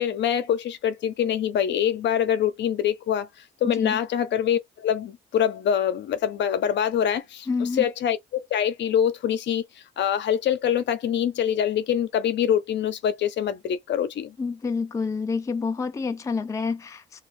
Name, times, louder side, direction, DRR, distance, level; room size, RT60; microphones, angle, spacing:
voice 1, 0.0-3.3 3.6-9.6 10.0-14.3, left 9 dB, 65° left, 0.6 m, -24 dB
voice 2, 3.6-4.0 7.5-7.9 14.4-17.2, left 4 dB, 15° left, 0.4 m, -28 dB
2.3 x 2.3 x 3.1 m
cardioid pair, 90°, 20 cm